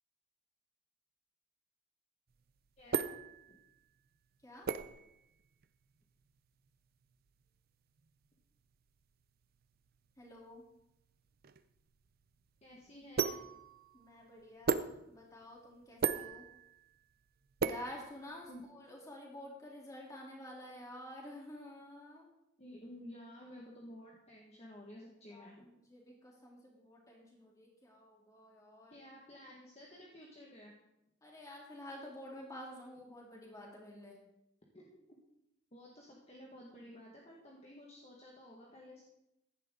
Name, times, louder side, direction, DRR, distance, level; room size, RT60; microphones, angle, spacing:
sound 1, 2.3-18.7, right 5 dB, 50° right, 0.5 m, -40 dB
voice 1, 10.2-10.6 13.9-16.5 17.6-22.3 25.3-29.0 31.2-34.2, left 1 dB, 15° left, -2 dB, 3.3 m, -50 dB
voice 2, 12.6-13.5 18.5-18.6 22.6-25.7 28.9-30.7 34.7-34.9 35.7-39.0, left 1 dB, 35° left, -2 dB, 1.7 m, -53 dB
15.5 x 11.0 x 3.8 m, 0.85 s
head